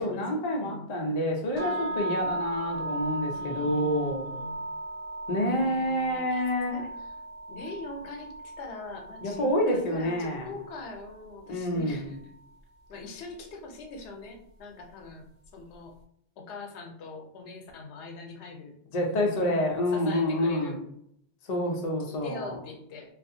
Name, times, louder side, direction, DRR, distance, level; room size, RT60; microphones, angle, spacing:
voice 1, 0.0-4.3 5.3-6.8 9.2-10.5 11.5-12.2 18.9-20.8 21.5-22.5, left 1 dB, 50° left, 0 dB, 0.5 m, -28 dB
voice 2, 0.5-0.9 1.5-2.2 3.3-4.6 5.5-7.1 7.5-12.2 12.9-15.2 15.5-16.0 16.4-19.4 19.9-20.8 22.0-23.1, left 3 dB, 85° left, 3 dB, 0.9 m, -43 dB
sound 1, 1.6-11.6, right 2 dB, 40° right, 0.9 m, -37 dB
2.4 x 2.4 x 2.6 m, 0.71 s
omnidirectional pair, 1.1 m